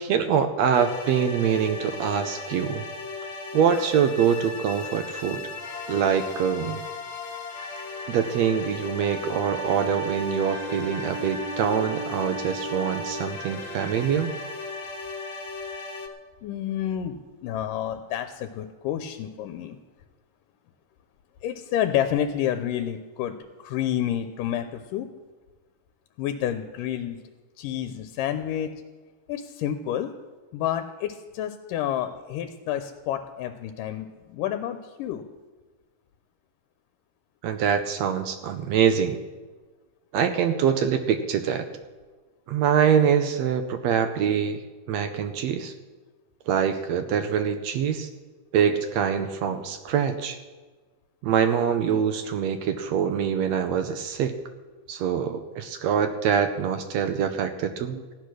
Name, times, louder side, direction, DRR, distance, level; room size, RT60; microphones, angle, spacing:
voice 1, 0.0-2.8 3.5-5.5 5.9-6.8 8.1-14.3 37.4-39.2 40.1-41.7 42.5-44.6 44.9-45.7 46.5-48.1 48.5-50.4 51.2-54.4 54.9-58.0, right 7 dB, 75° right, 8 dB, 1.6 m, -24 dB
sound 1, 0.7-16.1, left 3 dB, 50° left, 1.8 m, -36 dB
Wind instrument woodwind instrument, 8.9-13.3, right 3 dB, 55° right, 1.1 m, -36 dB
voice 2, 16.4-19.8 21.4-25.1 26.2-27.2 27.6-28.7 29.3-30.1 30.5-35.2, left 10 dB, 90° left, 8 dB, 2.3 m, -29 dB
15.0 x 10.0 x 6.3 m, 1.3 s
omnidirectional pair, 3.8 m